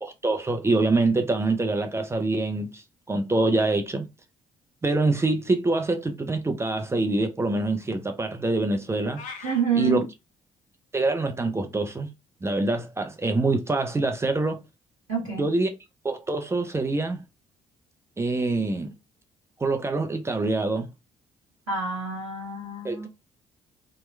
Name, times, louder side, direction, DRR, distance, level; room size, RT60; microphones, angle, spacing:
voice 1, 0.0-2.8 3.1-4.1 4.8-9.2 9.8-10.1 10.9-12.1 12.4-14.6 15.4-15.7 16.0-17.2 18.2-18.9 19.6-20.9 22.8-23.1, right 2 dB, 15° right, 0.6 m, -25 dB
sound 1, 9.1-9.6, left 5 dB, 55° left, 0.6 m, -39 dB
voice 2, 9.4-10.1 15.1-15.5 21.7-23.1, right 6 dB, 85° right, 0.7 m, -27 dB
2.9 x 2.2 x 3.1 m
figure-of-eight pair, 45°, 16 cm